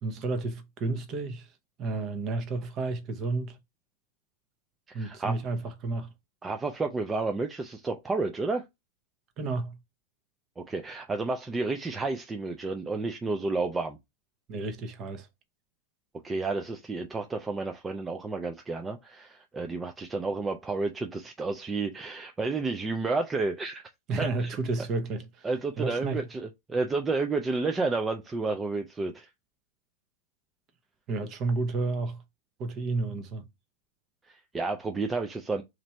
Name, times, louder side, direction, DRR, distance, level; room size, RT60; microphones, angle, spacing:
voice 1, 0.0-1.5 1.8-3.6 4.9-6.1 9.4-9.8 14.5-15.3 24.1-25.5 25.8-26.2 31.1-32.2 32.6-33.5, right 3 dB, 35° right, 0.8 m, -31 dB
voice 2, 4.9-5.4 6.4-8.6 10.6-14.0 16.2-23.8 24.2-24.5 25.4-29.3 34.3-35.6, right 3 dB, 15° right, 0.4 m, -31 dB
3.1 x 2.5 x 4.3 m
hypercardioid pair, 135°, 0 cm